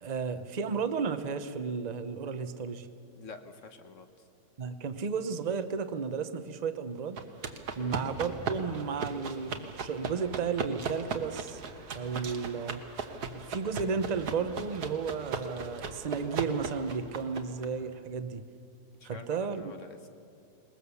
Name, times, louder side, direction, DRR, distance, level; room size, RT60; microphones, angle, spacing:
voice 1, 0.0-2.9 4.6-7.2 7.8-11.6 11.9-12.8 13.3-18.5 19.0-19.7, right 5 dB, 35° right, 10 dB, 0.7 m, -33 dB
voice 2, 3.2-4.1 7.8-8.0 19.0-20.1, left 4 dB, 50° left, 7 dB, 1.3 m, -47 dB
sound 1, 7.2-17.7, right 5 dB, 70° right, 1.8 m, -37 dB
21.5 x 20.0 x 7.0 m, 2.4 s
omnidirectional pair, 1.8 m